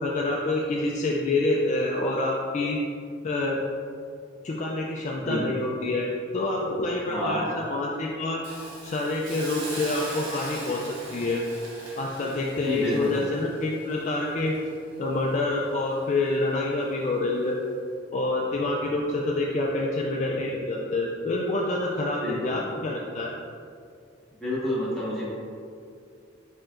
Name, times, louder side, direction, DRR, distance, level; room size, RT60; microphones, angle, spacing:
voice 1, 0.0-2.8 3.2-3.6 4.4-6.1 6.3-8.4 8.8-11.4 12.0-14.5 15.0-17.6 18.1-23.3, left 2 dB, 35° left, -2 dB, 0.3 m, -27 dB
voice 2, 7.1-7.4 12.6-13.1 22.2-22.6 24.4-25.2, left 1 dB, ahead, -11 dB, 1.4 m, -29 dB
Hiss, 8.4-15.5 15.9-16.0, right 1 dB, 80° right, 1.1 m, -41 dB
4.5 x 4.4 x 2.5 m, 2.3 s
head